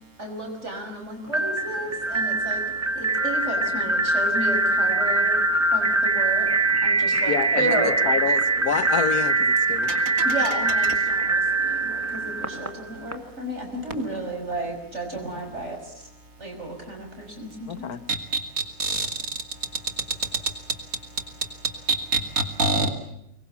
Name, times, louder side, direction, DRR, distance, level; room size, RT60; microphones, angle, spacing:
voice 1, 0.2-2.6 2.9-5.5 5.7-6.5 6.8-8.1 10.2-16.1 16.4-17.9, right 2 dB, 50° right, 6.2 m, -33 dB
sound 1, 1.3-13.1, right 2 dB, 10° right, 1.9 m, -23 dB
voice 2, 7.3-9.9 17.7-18.0, left 7 dB, 90° left, 1.8 m, -27 dB
voice 3, 9.8-10.5 10.8-10.9 18.1-19.1 20.3-20.8 21.6-22.9, right 3 dB, 70° right, 3.0 m, -27 dB
25.0 x 21.5 x 7.2 m
omnidirectional pair, 1.5 m